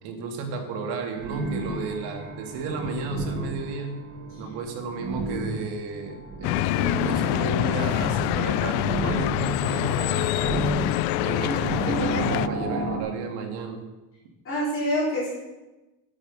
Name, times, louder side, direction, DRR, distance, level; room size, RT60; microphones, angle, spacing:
voice 1, 0.0-4.0 4.4-10.7 11.2-13.8, right 4 dB, 70° right, 4 dB, 2.0 m, -33 dB
sound 1, 1.1-13.0, right 2 dB, 35° right, 1.6 m, -33 dB
sound 2, 6.4-12.5, left 14 dB, 90° left, 0.6 m, -25 dB
voice 2, 11.4-12.3 14.4-15.3, equal, 30° left, -7 dB, 4.1 m, -28 dB
9.2 x 8.2 x 6.1 m, 1.1 s
cardioid pair, 150°, 41 cm